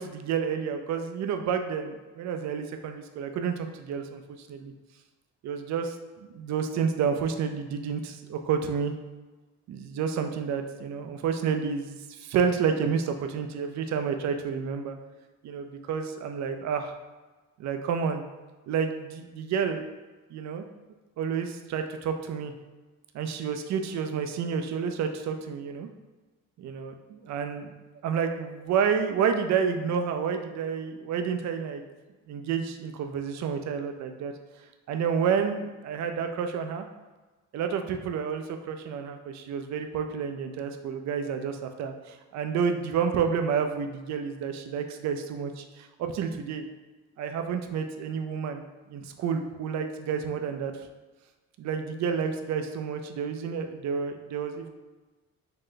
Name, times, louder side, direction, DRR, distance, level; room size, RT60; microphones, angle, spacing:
voice 1, 0.0-4.7 5.4-6.0 6.3-9.0 9.7-14.9 15.4-17.0 17.6-18.2 18.7-19.9 20.3-20.6 21.2-22.5 23.1-25.9 26.6-27.7 28.0-31.8 32.3-34.3 34.9-36.9 37.5-46.6 47.2-48.6 48.9-50.9 51.6-54.7, right 6 dB, 65° right, 7 dB, 0.5 m, -30 dB
3.8 x 2.1 x 3.7 m, 1.2 s
cardioid pair, 90°, 30 cm